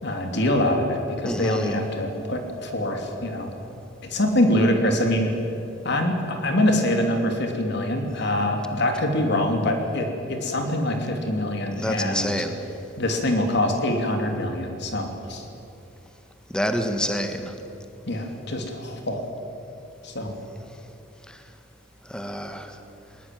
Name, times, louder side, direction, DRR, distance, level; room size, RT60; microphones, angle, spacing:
voice 1, 0.0-3.5 4.1-5.3 5.8-12.4 13.0-15.5 18.1-19.2 20.0-20.3, left 1 dB, 60° left, 4 dB, 2.9 m, -24 dB
voice 2, 1.2-1.7 11.8-12.6 16.5-17.4 22.1-22.7, equal, 5° left, 7 dB, 1.5 m, -27 dB
20.0 x 20.0 x 9.4 m, 2.7 s
head